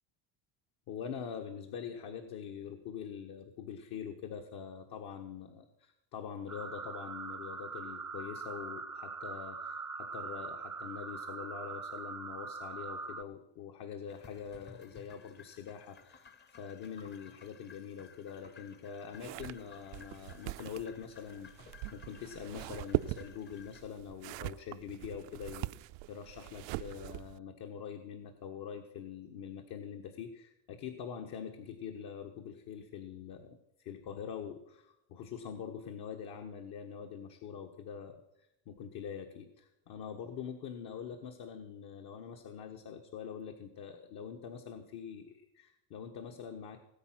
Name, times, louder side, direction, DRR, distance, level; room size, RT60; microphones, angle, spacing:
voice 1, 0.9-16.3 16.6-25.7 26.1-46.8, left 7 dB, 55° left, 5 dB, 1.5 m, -44 dB
sound 1, 6.5-13.2, right 4 dB, 5° right, 0.5 m, -42 dB
sound 2, 14.1-23.8, left 5 dB, 25° left, 0.9 m, -57 dB
sound 3, 19.1-27.4, right 19 dB, 70° right, 0.5 m, -41 dB
19.0 x 8.7 x 6.0 m, 0.89 s
cardioid pair, 140°, 45 cm